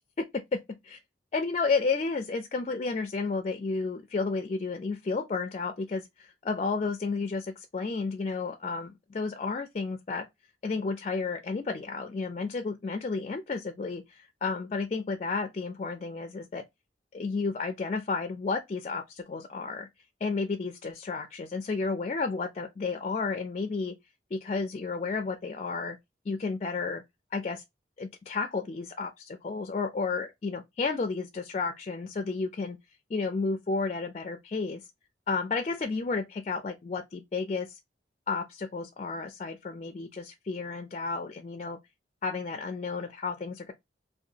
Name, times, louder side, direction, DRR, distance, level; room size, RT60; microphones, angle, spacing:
voice 1, 1.3-10.3 10.6-16.6 17.1-19.9 20.2-24.0 24.3-26.0 26.3-27.0 27.3-27.6 28.0-32.8 33.1-34.9 35.3-37.8 38.3-41.8 42.2-43.7, left 4 dB, 35° left, 0.3 m, -32 dB
2.8 x 2.2 x 2.5 m
head